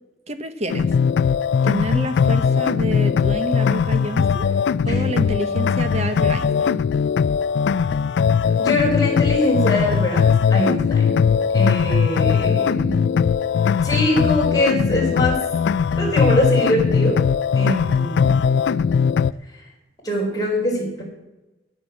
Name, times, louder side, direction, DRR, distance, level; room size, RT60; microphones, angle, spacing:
voice 1, 0.3-0.9 1.6-4.6 4.8-6.8, right 1 dB, 35° right, 9 dB, 1.0 m, -28 dB
sound 1, 0.7-19.3, left 6 dB, 75° left, 0.3 m, -19 dB
voice 2, 8.6-13.2 13.8-15.4 16.0-17.2 17.5-18.4 20.0-21.0, left 1 dB, 20° left, -3 dB, 4.3 m, -23 dB
9.9 x 9.2 x 7.2 m, 1.0 s
head